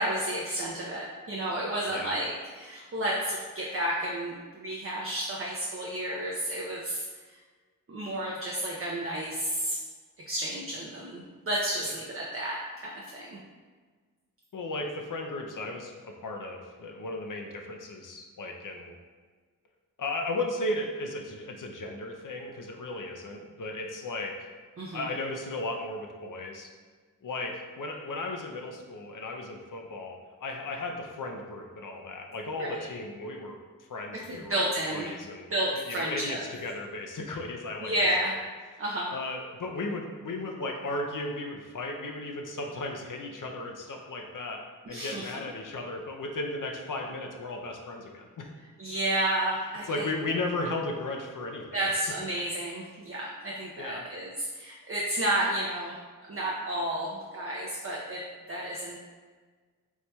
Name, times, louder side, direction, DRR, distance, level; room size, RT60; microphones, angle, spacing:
voice 1, 0.0-7.4 7.9-9.8 10.3-13.4 24.8-25.0 32.6-32.9 34.3-35.1 35.5-36.4 37.8-38.3 38.8-39.1 44.9-45.4 48.8-50.1 51.7-55.9 56.3-59.0, right 1 dB, 40° right, -3 dB, 0.5 m, -31 dB
voice 2, 14.5-18.9 20.0-24.5 24.9-26.7 27.2-37.9 38.2-38.3 39.1-44.6 44.9-48.5 49.8-52.0 53.8-54.0, left 2 dB, 65° left, 2 dB, 0.5 m, -35 dB
4.5 x 2.7 x 2.2 m, 1.5 s
wide cardioid pair, 50°, 34 cm